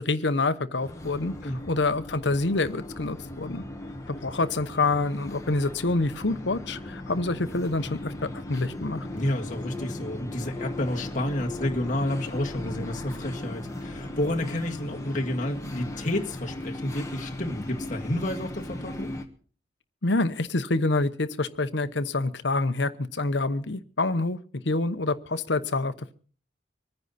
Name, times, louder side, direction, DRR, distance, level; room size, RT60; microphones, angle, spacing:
voice 1, 0.0-3.6 4.1-9.1 20.0-25.9, left 2 dB, 65° left, 11 dB, 1.0 m, -27 dB
sound 1, 0.8-19.2, left 1 dB, 15° left, 1.3 m, -37 dB
voice 2, 9.1-19.2, left 1 dB, 40° left, 1 dB, 1.9 m, -30 dB
24.5 x 9.8 x 4.2 m, 0.43 s
head